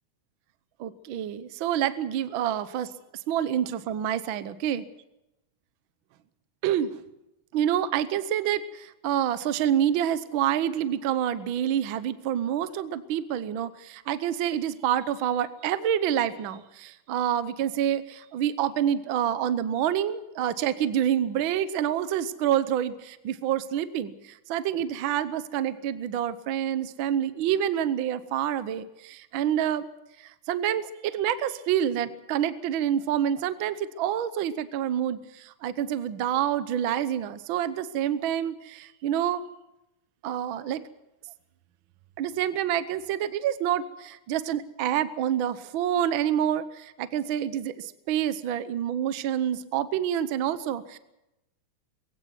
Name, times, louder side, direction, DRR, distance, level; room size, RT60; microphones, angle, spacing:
voice 1, 0.8-2.9 3.3-4.8 6.6-7.0 7.5-24.1 24.5-29.9 30.5-39.4 40.2-40.8 42.2-51.0, right 10 dB, 80° right, 14 dB, 1.1 m, -27 dB
22.0 x 16.5 x 7.6 m, 0.94 s
omnidirectional pair, 3.4 m